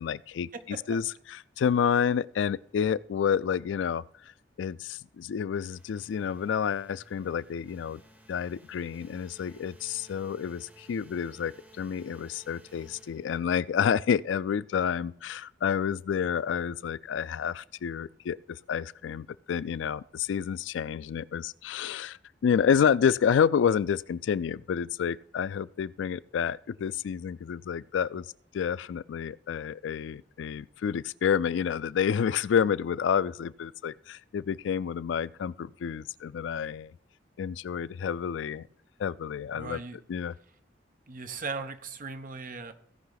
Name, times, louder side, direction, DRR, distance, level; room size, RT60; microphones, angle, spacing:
voice 1, 0.0-4.0 4.6-8.0 8.3-28.3 28.5-36.9 37.4-38.7 39.0-39.8 40.1-40.3, left 7 dB, 85° left, 0.3 m, -29 dB
voice 2, 0.5-1.0 39.5-40.0 41.1-42.7, right 4 dB, 50° right, 1.0 m, -38 dB
sound 1, 5.5-13.8, right 2 dB, 10° right, 1.1 m, -57 dB
16.5 x 5.7 x 3.9 m
head